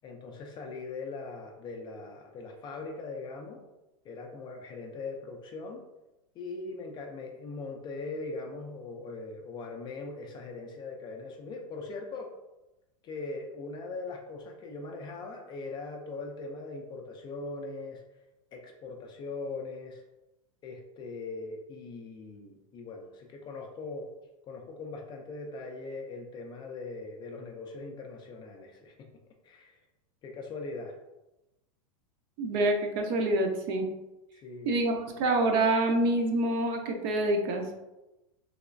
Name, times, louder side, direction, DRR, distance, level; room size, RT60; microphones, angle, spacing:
voice 1, 0.0-3.6 4.0-5.8 6.4-12.3 13.0-18.0 18.5-20.0 20.6-24.1 24.5-29.1 29.4-29.7 30.2-30.9 34.4-34.8, left 3 dB, 25° left, 2 dB, 0.4 m, -40 dB
voice 2, 32.4-33.9 34.7-37.7, right 2 dB, 45° right, 3 dB, 0.6 m, -26 dB
3.2 x 2.9 x 2.5 m, 0.97 s
supercardioid pair, 135°, 18 cm